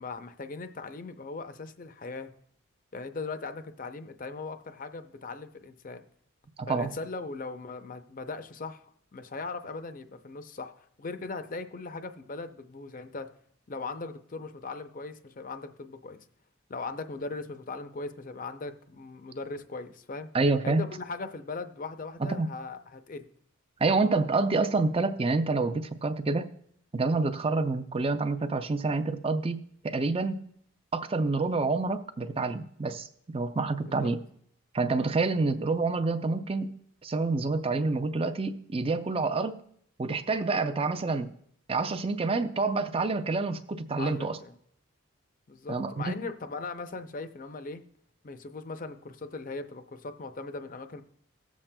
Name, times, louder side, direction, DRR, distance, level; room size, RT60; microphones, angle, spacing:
voice 1, 0.0-2.3 2.9-6.0 6.7-8.8 9.1-13.3 13.7-16.3 16.7-20.3 20.6-23.3 33.8-34.1 43.9-44.6 45.5-47.8 48.2-51.0, left 3 dB, 40° left, 9 dB, 0.5 m, -39 dB
voice 2, 6.6-6.9 20.3-20.8 22.2-22.5 23.8-26.5 26.9-30.5 30.9-34.2 34.7-39.6 40.0-41.3 41.7-44.4 45.7-46.2, right 3 dB, 25° right, 10 dB, 0.4 m, -28 dB
18.5 x 7.3 x 2.2 m, 0.66 s
head